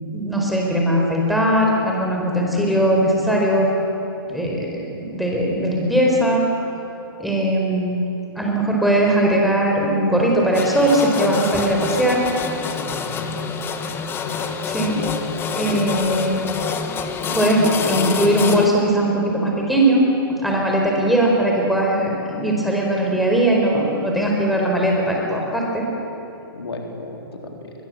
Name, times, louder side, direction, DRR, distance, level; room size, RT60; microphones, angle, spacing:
voice 1, 0.1-3.7 4.2-6.4 7.2-8.0 8.3-12.2 14.7-15.0 15.5-16.5 17.3-20.0 20.3-25.9, right 1 dB, ahead, -2 dB, 4.6 m, -19 dB
sound 1, 10.5-18.7, left 5 dB, 20° left, 1.4 m, -27 dB
voice 2, 12.8-13.5 14.3-14.6 15.7-15.8 26.5-27.7, left 3 dB, 85° left, 2 dB, 3.8 m, -35 dB
22.5 x 21.5 x 7.9 m, 2.9 s
hypercardioid pair, 135°, 13 cm